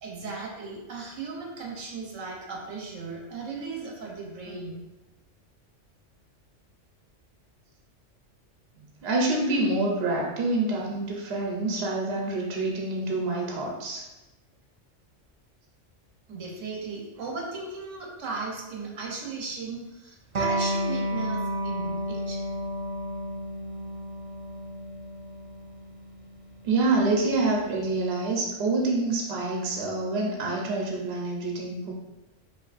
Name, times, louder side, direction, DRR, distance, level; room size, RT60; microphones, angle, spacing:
voice 1, 0.0-4.8 16.3-22.4, right 3 dB, 85° right, -2 dB, 1.3 m, -36 dB
voice 2, 9.0-14.0 26.6-31.9, right 2 dB, 60° right, -1 dB, 1.0 m, -27 dB
Electric guitar, 20.3-27.5, equal, 45° right, 0.4 m, -32 dB
5.5 x 3.0 x 2.5 m, 1.0 s
omnidirectional pair, 1.3 m